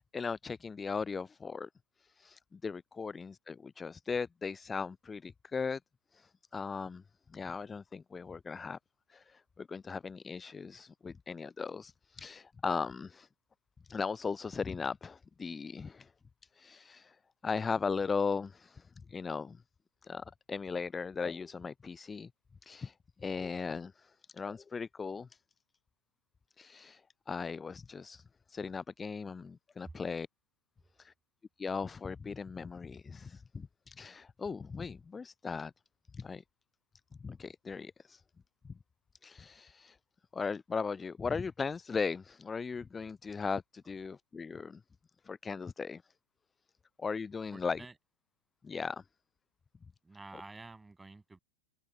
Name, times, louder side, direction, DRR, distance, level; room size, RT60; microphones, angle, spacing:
voice 1, 0.0-1.7 2.0-5.8 6.1-7.0 7.3-8.8 9.1-13.3 13.9-16.1 16.5-17.2 17.4-19.6 20.0-22.3 22.6-25.3 26.6-28.2 28.5-30.3 31.0-31.1 31.6-35.7 36.1-36.4 37.2-38.2 39.2-40.0 40.3-44.8 45.2-46.0 47.0-47.8 48.6-49.0, left 5 dB, 15° left, 0.3 m, -38 dB
voice 2, 47.5-47.9 50.0-51.4, right 3 dB, 10° right, 6.6 m, -50 dB
figure-of-eight pair, 90°, 0 cm